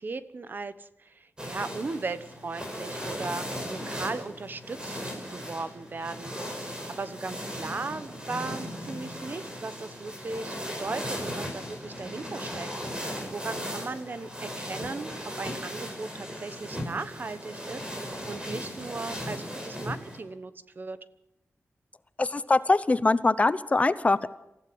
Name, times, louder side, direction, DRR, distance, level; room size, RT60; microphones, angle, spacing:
voice 1, 0.0-6.4 6.6-15.1 15.4-21.0, right 3 dB, 45° right, 13 dB, 1.1 m, -37 dB
sound 1, 1.4-20.2, equal, 20° right, 5.3 m, -37 dB
voice 2, 22.2-24.3, left 3 dB, 30° left, 15 dB, 0.8 m, -23 dB
27.5 x 15.0 x 8.0 m, 0.91 s
wide cardioid pair, 155°, 5 cm